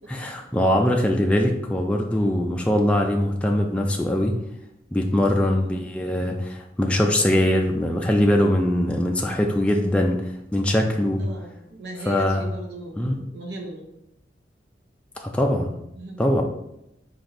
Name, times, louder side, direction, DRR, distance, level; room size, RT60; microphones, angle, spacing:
voice 1, 0.1-4.3 4.9-11.2 12.0-12.5 13.0-13.2 15.2-15.7 16.2-16.4, left 1 dB, 5° left, 1 dB, 0.3 m, -22 dB
voice 2, 5.4-5.9 11.2-13.8 16.0-16.2, right 2 dB, 65° right, 1 dB, 0.7 m, -38 dB
4.3 x 2.6 x 3.9 m, 0.85 s
head